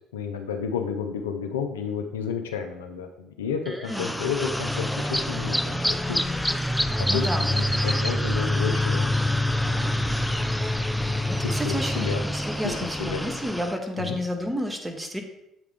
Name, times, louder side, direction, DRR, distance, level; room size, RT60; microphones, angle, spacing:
voice 1, 0.1-6.2 7.0-9.1 9.7-9.9 11.0-12.2 12.6-13.2 14.0-14.2, left 6 dB, 85° left, 4 dB, 0.4 m, -31 dB
voice 2, 3.7-4.2 7.1-7.6 11.3-15.2, equal, 15° right, 4 dB, 1.1 m, -31 dB
sound 1, 3.9-13.8, left 1 dB, 5° left, 0.4 m, -26 dB
7.7 x 3.6 x 3.4 m, 0.83 s
hypercardioid pair, 55°, 0 cm